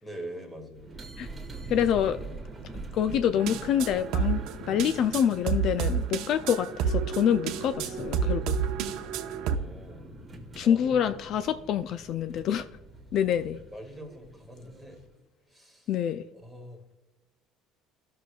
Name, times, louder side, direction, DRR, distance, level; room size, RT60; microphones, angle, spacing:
voice 1, 0.0-1.0 9.3-10.1 10.5-11.2 11.6-11.8 13.7-15.0 15.5-15.9 16.3-16.8, right 1 dB, 5° left, 2 dB, 1.8 m, -44 dB
sound 1, 0.7-15.2, right 2 dB, 15° right, 1.6 m, -44 dB
voice 2, 1.7-2.2 2.9-8.5 10.6-12.7 13.1-13.6 15.9-16.2, left 9 dB, 55° left, 11 dB, 0.3 m, -26 dB
sound 2, 3.4-9.6, right 7 dB, 70° right, 0.7 m, -30 dB
13.5 x 6.7 x 2.3 m, 1.1 s
cardioid pair, 130°, 0 cm